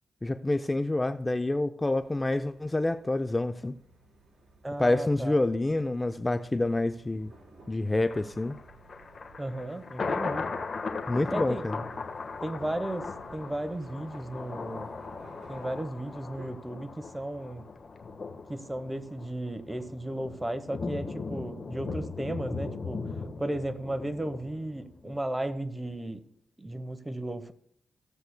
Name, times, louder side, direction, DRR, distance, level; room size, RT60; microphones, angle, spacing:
voice 1, 0.2-3.8 4.8-7.3 7.7-8.6 11.1-11.8, left 2 dB, 20° left, 10 dB, 0.4 m, -27 dB
sound 1, 1.9-16.5, right 2 dB, 55° right, 4.1 m, -55 dB
voice 2, 4.6-5.3 9.4-10.5 11.3-11.6 12.4-14.9 15.5-17.7 18.5-23.1 23.4-26.3 26.6-27.5, right 1 dB, 15° right, 11 dB, 0.9 m, -35 dB
Thunder, 8.1-25.2 25.5-25.6, left 4 dB, 50° left, 1.3 m, -38 dB
15.5 x 7.9 x 2.2 m, 0.66 s
cardioid pair, 75°, 0 cm